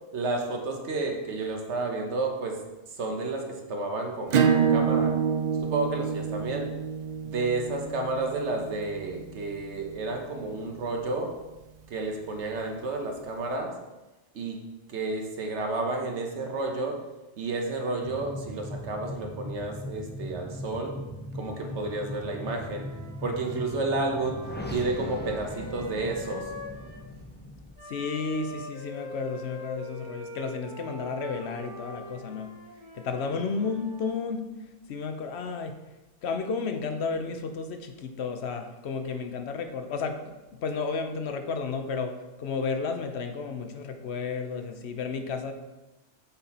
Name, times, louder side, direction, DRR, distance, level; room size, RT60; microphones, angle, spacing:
voice 1, 0.1-2.6 2.9-5.1 5.6-6.7 7.2-11.3 11.9-13.7 14.3-14.6 14.9-17.0 17.4-21.0 21.3-22.8 23.2-24.4 24.7-26.5, right 3 dB, 75° right, 2 dB, 1.3 m, -31 dB
Acoustic guitar / Strum, 4.3-9.6, right 6 dB, 60° right, 0.4 m, -27 dB
sound 1, 18.0-27.7, left 1 dB, 15° left, 0.4 m, -39 dB
Wind instrument woodwind instrument, 21.3-27.1 27.8-34.2, left 1 dB, 40° right, 1.5 m, -43 dB
voice 2, 27.9-32.5 32.9-34.5 34.9-35.8 36.2-40.4 40.6-42.1 42.4-45.5, left 5 dB, 70° left, 6 dB, 0.9 m, -32 dB
7.8 x 4.1 x 4.2 m, 1.1 s
omnidirectional pair, 1.2 m